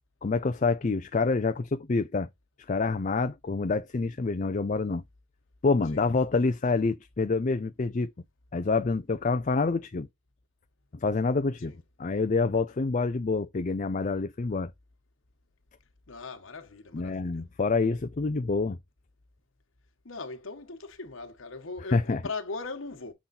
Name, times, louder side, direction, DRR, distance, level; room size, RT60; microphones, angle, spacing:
voice 1, 0.2-2.3 2.7-5.0 5.6-8.1 8.5-10.1 11.0-11.7 12.0-14.7 16.9-18.8 21.9-22.2, left 3 dB, 40° left, 0.5 m, -27 dB
voice 2, 16.1-17.4 20.0-23.1, left 3 dB, 85° left, 1.3 m, -39 dB
7.2 x 3.8 x 4.1 m
head